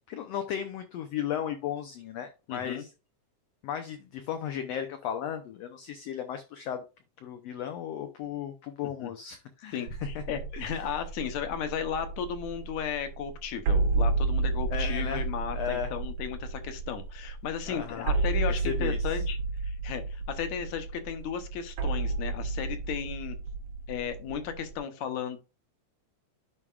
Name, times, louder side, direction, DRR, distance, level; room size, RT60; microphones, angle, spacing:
voice 1, 0.1-2.9 3.6-6.8 7.2-9.9 10.1-10.2 10.5-10.8 14.7-15.2 15.5-15.9 17.7-18.1 18.5-19.0, left 9 dB, 90° left, 1.4 m, -35 dB
voice 2, 2.5-2.8 9.0-9.1 9.7-19.4 19.6-23.4 23.9-25.4, left 8 dB, 70° left, 2.1 m, -35 dB
sound 1, 9.9-24.8, right 3 dB, 80° right, 2.9 m, -31 dB
11.0 x 4.8 x 2.3 m
omnidirectional pair, 3.7 m